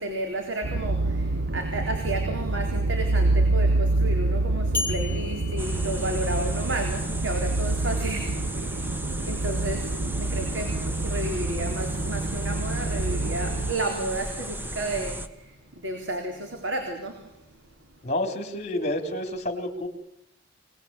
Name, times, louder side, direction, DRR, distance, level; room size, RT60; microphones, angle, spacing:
voice 1, 0.0-8.9 9.3-17.6, right 1 dB, 85° right, 3 dB, 4.0 m, -32 dB
sound 1, 0.6-13.7, right 2 dB, 60° right, 1.0 m, -27 dB
sound 2, 4.7-6.8, left 3 dB, 10° left, 4.4 m, -35 dB
sound 3, 5.6-15.3, right 1 dB, 10° right, 1.3 m, -36 dB
voice 2, 18.0-19.9, left 1 dB, 35° left, 7 dB, 3.8 m, -29 dB
27.5 x 19.5 x 8.9 m, 0.77 s
head